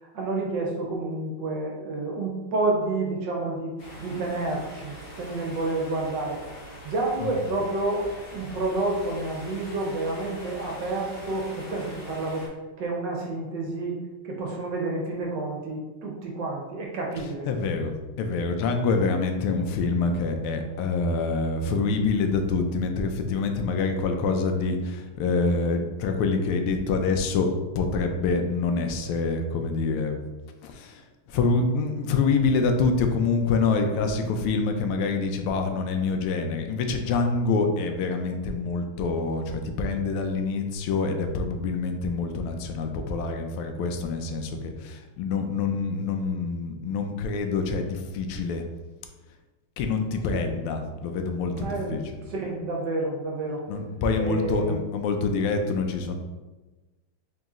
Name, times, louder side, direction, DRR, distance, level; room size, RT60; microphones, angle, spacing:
voice 1, 0.0-3.7 4.0-6.4 6.8-12.5 12.8-14.0 14.2-17.5 50.3-50.5 51.6-52.0 52.3-53.6 54.2-54.8, right 2 dB, 65° right, -1 dB, 1.3 m, -29 dB
sound 1, 3.8-12.5, equal, 45° left, 0.9 m, -43 dB
voice 2, 17.5-17.9 18.2-30.2 30.6-48.6 49.8-52.0 53.7-56.1, left 4 dB, 85° left, 5 dB, 1.5 m, -26 dB
4.1 x 2.9 x 3.6 m, 1.2 s
omnidirectional pair, 2.3 m